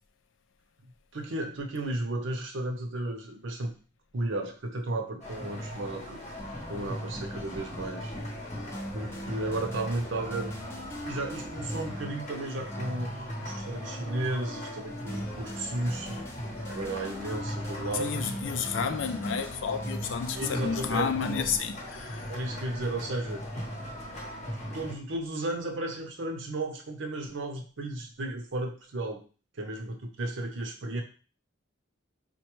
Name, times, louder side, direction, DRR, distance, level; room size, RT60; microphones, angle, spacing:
voice 1, 1.1-3.7 4.1-6.2 6.7-8.1 8.9-10.5 11.0-13.1 13.4-16.2 16.7-18.2 20.3-21.5 22.3-23.5 24.7-29.2 29.6-31.0, right 2 dB, 70° right, 0.7 m, -34 dB
sound 1, 5.2-24.9, equal, 35° left, 0.8 m, -39 dB
sound 2, 6.4-21.6, equal, 15° left, 0.5 m, -42 dB
voice 2, 18.0-22.2, left 6 dB, 75° left, 0.4 m, -31 dB
4.1 x 2.2 x 3.0 m
head